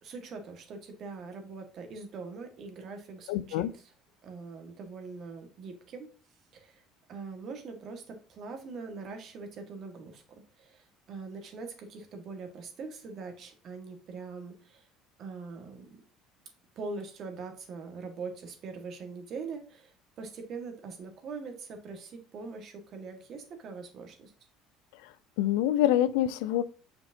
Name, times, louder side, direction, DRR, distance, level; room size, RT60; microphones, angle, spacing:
voice 1, 0.0-3.9 4.2-6.1 6.5-6.8 7.1-10.2 10.6-14.9 15.2-15.9 16.7-24.3, right 4 dB, 55° right, 1.6 m, -42 dB
voice 2, 3.3-3.7 25.4-26.6, left 12 dB, 80° left, 0.4 m, -25 dB
7.1 x 5.2 x 2.7 m
hypercardioid pair, 80°, 0 cm